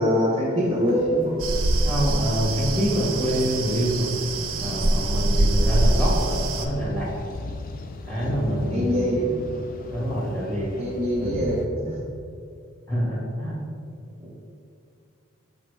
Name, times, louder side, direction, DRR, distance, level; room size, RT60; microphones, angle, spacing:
voice 1, 0.0-1.4 5.6-5.8 8.7-9.2 10.8-12.0, equal, 30° right, -5 dB, 0.7 m, -24 dB
sound 1, 0.6-11.7, left 2 dB, 40° left, 0.4 m, -38 dB
sound 2, 1.4-6.7, right 1 dB, 90° right, 0.6 m, -24 dB
voice 2, 1.8-4.1 4.6-7.1 8.0-9.3 9.9-10.7 11.2-11.3 12.9-13.6 14.2-14.3, equal, 10° left, -6 dB, 1.5 m, -26 dB
6.0 x 5.6 x 3.2 m, 2.4 s
head